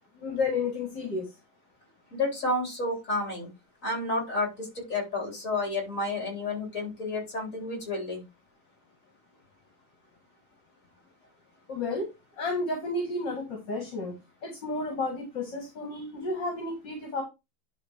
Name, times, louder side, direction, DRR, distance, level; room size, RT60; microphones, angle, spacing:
voice 1, 0.2-1.3 11.7-12.1 12.4-14.2 14.4-17.2, left 3 dB, 60° left, 1 dB, 2.6 m, -31 dB
voice 2, 2.1-3.5 3.8-8.2, left 2 dB, 40° left, 1 dB, 4.1 m, -30 dB
10.5 x 3.6 x 4.5 m, 0.25 s
omnidirectional pair, 2.2 m